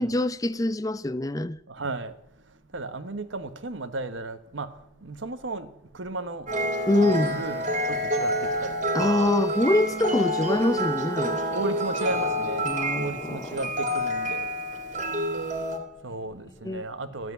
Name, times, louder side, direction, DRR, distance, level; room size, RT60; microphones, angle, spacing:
voice 1, 0.0-1.6 6.9-7.4 8.9-11.4 12.7-13.4 16.6-16.8, left 1 dB, 20° left, 0.5 m, -25 dB
voice 2, 1.7-9.4 11.4-17.3, right 2 dB, 80° right, 1.2 m, -35 dB
sound 1, 6.5-15.8, equal, 40° right, 2.3 m, -28 dB
13.5 x 7.8 x 9.3 m
head